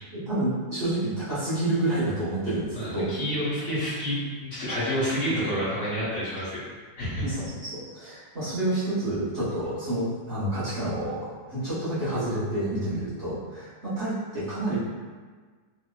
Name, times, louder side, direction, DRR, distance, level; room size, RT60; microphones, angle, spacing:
voice 1, 0.1-3.1 7.2-14.8, right 1 dB, 45° right, -12 dB, 1.5 m, -29 dB
voice 2, 2.7-6.7 7.0-7.2, equal, 50° left, -11 dB, 1.5 m, -29 dB
3.6 x 2.8 x 2.3 m, 1.5 s
omnidirectional pair, 1.8 m